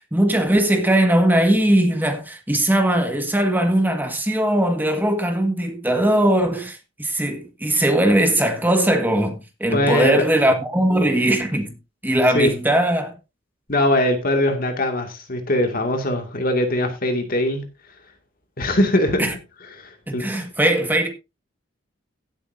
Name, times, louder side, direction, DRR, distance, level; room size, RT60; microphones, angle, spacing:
voice 1, 0.0-11.7 12.0-13.1 19.2-19.3 20.1-21.1, right 1 dB, 10° right, 1.7 m, -20 dB
voice 2, 9.7-10.2 12.3-12.5 13.7-17.7 18.6-19.3 19.8-20.3, left 1 dB, 50° left, 2.3 m, -21 dB
16.5 x 8.4 x 2.7 m
head